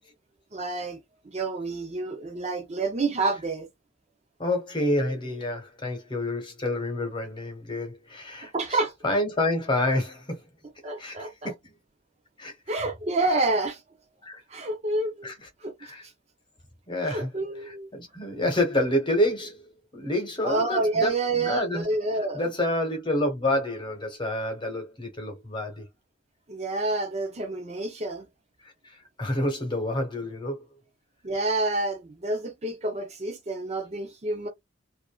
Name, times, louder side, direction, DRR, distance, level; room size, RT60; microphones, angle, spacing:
voice 1, 0.5-1.0 1.2-3.7 8.5-8.9 10.8-11.5 12.7-13.8 14.5-15.3 15.6-15.9 17.0-17.9 20.4-22.5 26.5-28.3 31.2-34.5, right 2 dB, 35° right, 0.6 m, -28 dB
voice 2, 4.4-8.8 9.0-10.4 11.0-11.7 12.4-12.5 14.2-14.4 15.2-15.3 15.8-16.0 16.9-17.3 17.6-19.6 19.9-21.8 22.3-25.8 28.6-30.6, left 1 dB, 25° left, 1.0 m, -28 dB
2.6 x 2.5 x 2.3 m
head